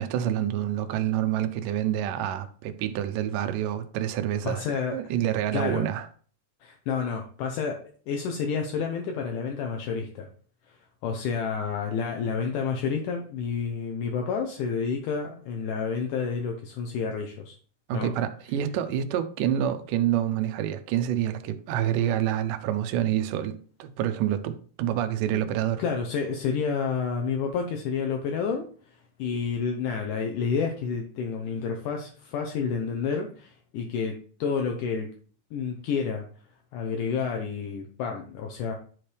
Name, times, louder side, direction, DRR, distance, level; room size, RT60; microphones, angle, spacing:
voice 1, 0.0-6.1 17.9-25.8, right 11 dB, 85° right, 2.2 m, -27 dB
voice 2, 4.5-5.0 5.5-5.8 6.6-10.3 10.7-10.8 11.0-17.6 17.9-18.1 25.3-25.4 25.8-35.1 35.5-36.2 36.7-38.7, left 6 dB, 80° left, 2.2 m, -30 dB
9.9 x 4.4 x 3.3 m
omnidirectional pair, 3.8 m